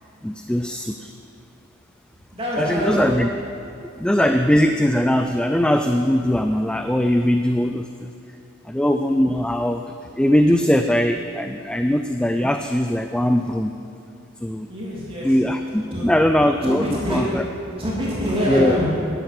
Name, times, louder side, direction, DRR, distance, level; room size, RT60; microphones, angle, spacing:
voice 1, 0.2-1.1 2.6-3.6 4.0-8.1 8.6-9.8 10.2-13.8 14.4-14.7 15.2-17.4 18.5-18.8, equal, 5° left, 6 dB, 0.3 m, -20 dB
voice 2, 2.3-3.0 14.7-15.3 15.9-16.0 16.6-17.3 17.8-18.9, equal, 25° right, -7 dB, 2.9 m, -25 dB
12.0 x 11.5 x 6.0 m, 2.7 s
head